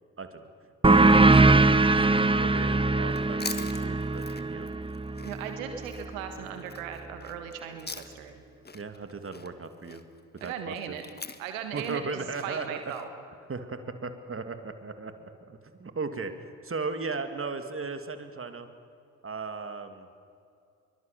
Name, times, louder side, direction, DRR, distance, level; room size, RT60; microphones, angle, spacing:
voice 1, 0.2-0.5 1.1-4.7 8.7-10.0 10.3-11.0 11.7-12.8 13.5-16.3 16.6-18.7 19.2-20.1, right 4 dB, 30° right, 8 dB, 2.7 m, -37 dB
sound 1, 0.8-6.0, right 2 dB, 15° right, 1.3 m, -22 dB
Chewing mastication, 3.0-8.4 8.6-13.0, left 4 dB, 25° left, 1.8 m, -44 dB
voice 2, 5.2-8.4 10.4-11.0 11.4-12.0 12.4-13.1, right 8 dB, 80° right, 7 dB, 1.6 m, -38 dB
23.5 x 23.5 x 7.0 m, 2.4 s
hypercardioid pair, 45°, 40 cm